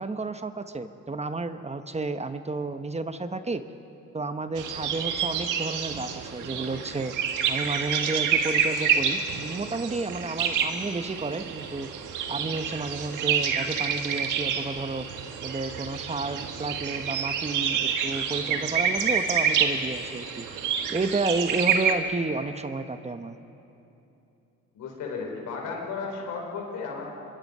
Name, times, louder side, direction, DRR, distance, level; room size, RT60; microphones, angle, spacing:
voice 1, 0.0-3.6 4.1-7.1 7.5-11.9 12.3-15.1 15.4-20.5 20.9-23.4, right 3 dB, 20° right, 9 dB, 1.0 m, -31 dB
sound 1, 4.6-21.9, right 7 dB, 85° right, 1.7 m, -28 dB
voice 2, 24.7-27.1, left 4 dB, 85° left, 0 dB, 4.5 m, -34 dB
25.5 x 22.0 x 5.5 m, 2.9 s
cardioid pair, 90°, 30 cm